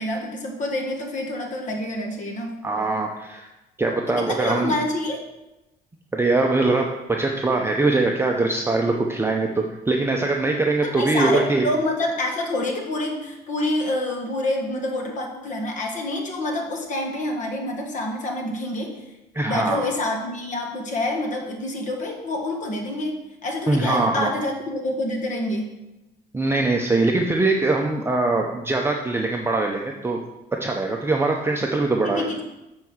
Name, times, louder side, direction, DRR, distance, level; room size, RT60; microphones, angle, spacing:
voice 1, 0.0-2.5 4.1-5.2 10.8-19.0 19.4-25.7 32.0-32.4, left 1 dB, 45° left, 2 dB, 1.7 m, -27 dB
voice 2, 2.6-3.5 3.8-4.7 6.1-11.7 19.3-19.9 23.7-24.3 26.3-30.2 30.6-32.2, right 3 dB, 15° right, 1 dB, 0.7 m, -22 dB
7.5 x 4.7 x 6.2 m, 0.97 s
cardioid pair, 110°, 17 cm